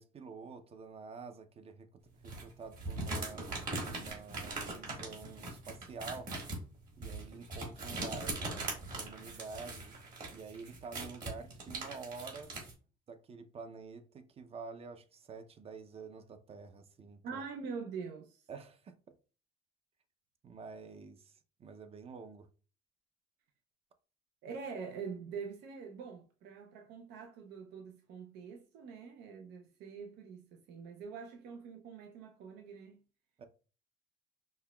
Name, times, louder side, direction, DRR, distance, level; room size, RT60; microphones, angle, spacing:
voice 1, 0.0-3.5 3.8-6.4 7.0-8.7 8.9-10.0 10.3-12.5 13.1-17.4 18.5-19.1 20.4-22.5 33.4-33.5, right 4 dB, 35° right, 0.6 m, -48 dB
sound 1, 2.2-12.7, right 2 dB, 50° right, 1.8 m, -41 dB
voice 2, 17.2-18.4 24.4-33.0, right 5 dB, 75° right, 0.6 m, -45 dB
5.4 x 2.2 x 2.3 m
cardioid pair, 110°, 17 cm